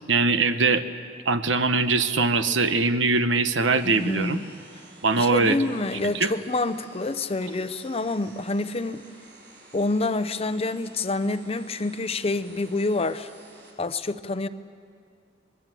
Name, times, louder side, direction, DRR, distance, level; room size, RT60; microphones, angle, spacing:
voice 1, 0.1-0.8 1.2-4.4 5.0-5.6 6.0-6.3, right 3 dB, 80° right, 10 dB, 1.1 m, -22 dB
sound 1, 3.7-13.7, right 2 dB, 65° right, 6.1 m, -51 dB
voice 2, 3.8-4.4 5.2-9.0 9.7-13.3 13.8-14.5, left 2 dB, 30° left, 12 dB, 0.7 m, -27 dB
25.0 x 21.5 x 7.7 m, 2.3 s
head